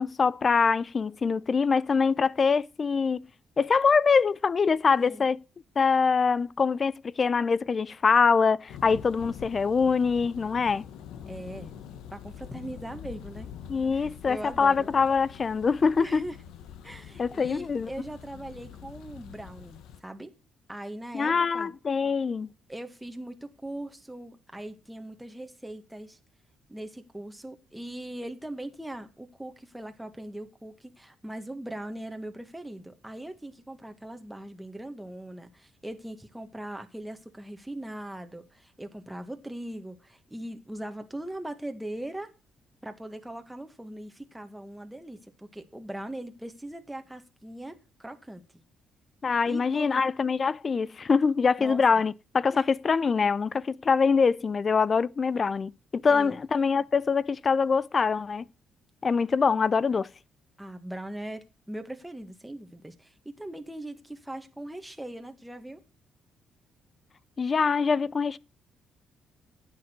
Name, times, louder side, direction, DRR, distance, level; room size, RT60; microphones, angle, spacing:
voice 1, 0.0-3.3 3.6-5.4 5.8-10.9 13.7-16.2 17.2-17.9 21.1-22.5 49.2-58.4 59.0-60.1 67.4-68.4, left 5 dB, 40° left, 0.5 m, -24 dB
Thunder, 8.7-20.0, left 9 dB, 85° left, 1.2 m, -45 dB
voice 2, 11.3-11.7 12.1-13.5 13.9-14.9 16.0-16.4 16.8-20.3 20.7-21.7 22.7-26.2 26.7-42.3 42.8-48.4 49.5-50.0 51.6-52.0 52.5-52.7 56.1-56.4 60.6-65.8, right 1 dB, 5° right, 1.7 m, -40 dB
10.5 x 8.8 x 4.6 m
cardioid pair, 90°, 0 cm